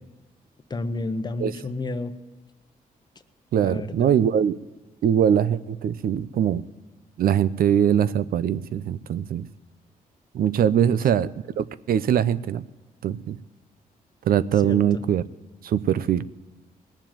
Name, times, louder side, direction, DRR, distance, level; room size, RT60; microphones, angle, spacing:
voice 1, 0.7-2.1 3.6-4.1 10.8-10.9 14.6-15.0, left 2 dB, 30° left, 10 dB, 0.9 m, -31 dB
voice 2, 3.5-4.6 5.0-6.6 7.2-9.5 10.3-12.6 13.0-13.4 14.2-15.2 15.6-16.3, right 9 dB, 75° right, 16 dB, 0.6 m, -22 dB
20.0 x 7.4 x 9.0 m, 1.2 s
cardioid pair, 130°, 15 cm